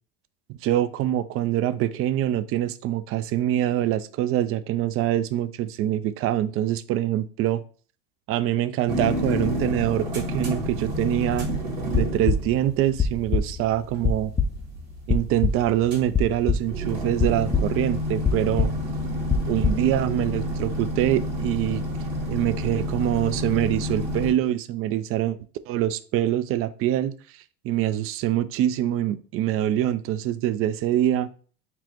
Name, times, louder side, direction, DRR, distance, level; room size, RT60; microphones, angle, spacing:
voice 1, 0.5-7.6 8.3-11.5 12.0-14.3 15.1-18.7 19.5-21.8 22.3-25.4 25.7-27.1 27.6-31.3, right 12 dB, 45° right, 0.4 m, -24 dB
sound 1, 8.9-24.3, equal, 85° right, 1.8 m, -30 dB
sound 2, 11.3-11.5 11.8-12.7 13.0-13.6 14.0-14.7 15.1-15.8 16.1-16.8 17.2-18.0 18.2-19.8, left 6 dB, 15° left, 0.4 m, -25 dB
4.3 x 2.1 x 4.3 m
supercardioid pair, 95°, 31 cm